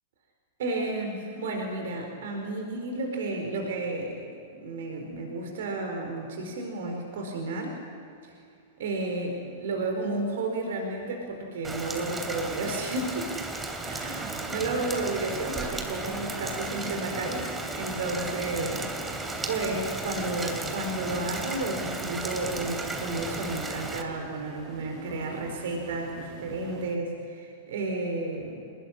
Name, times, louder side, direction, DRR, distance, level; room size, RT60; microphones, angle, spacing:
voice 1, 0.6-4.3 4.5-7.8 8.2-8.3 8.8-13.3 13.8-18.8 19.2-28.6, right 2 dB, 55° right, 3 dB, 4.6 m, -32 dB
Rain, 11.6-24.0, right 2 dB, 10° right, 3.1 m, -35 dB
sound 1, 13.8-27.0, right 7 dB, 35° right, 2.3 m, -46 dB
27.5 x 20.0 x 10.0 m, 2.5 s
figure-of-eight pair, 100°, 0 cm